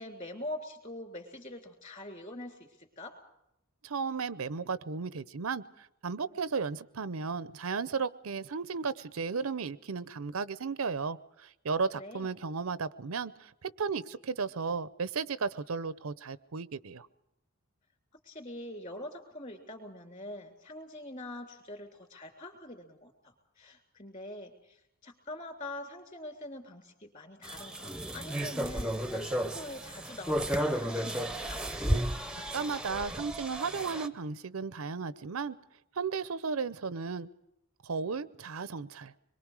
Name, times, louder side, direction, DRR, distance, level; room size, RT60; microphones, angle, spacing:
voice 1, 0.0-3.2 11.9-12.3 18.2-31.6, left 1 dB, 35° left, 4 dB, 3.3 m, -44 dB
voice 2, 3.8-17.1 32.5-35.6 36.0-37.3 37.8-39.1, right 5 dB, 75° right, 16 dB, 0.7 m, -34 dB
sound 1, 27.4-34.1, right 1 dB, 5° right, 0.7 m, -33 dB
25.5 x 22.5 x 4.8 m, 0.84 s
head